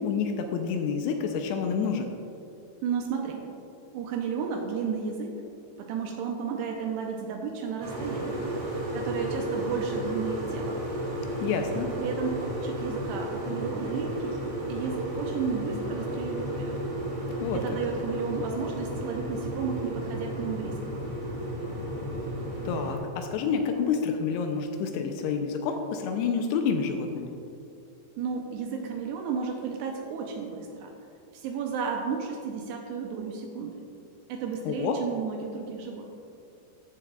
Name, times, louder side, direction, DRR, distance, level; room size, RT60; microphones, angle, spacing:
voice 1, 0.0-2.1 11.4-11.9 17.4-17.6 22.7-27.3 34.7-35.0, left 6 dB, 85° left, 5 dB, 2.4 m, -28 dB
voice 2, 2.8-3.4 3.9-5.3 5.8-8.5 8.9-10.8 12.0-14.4 14.7-16.8 17.5-21.0 28.2-30.9 31.4-33.8 34.3-36.1, right 6 dB, 85° right, 2 dB, 2.4 m, -33 dB
sound 1, 7.8-23.0, right 1 dB, 40° right, 2.3 m, -33 dB
14.5 x 7.1 x 2.3 m, 2.5 s
omnidirectional pair, 5.3 m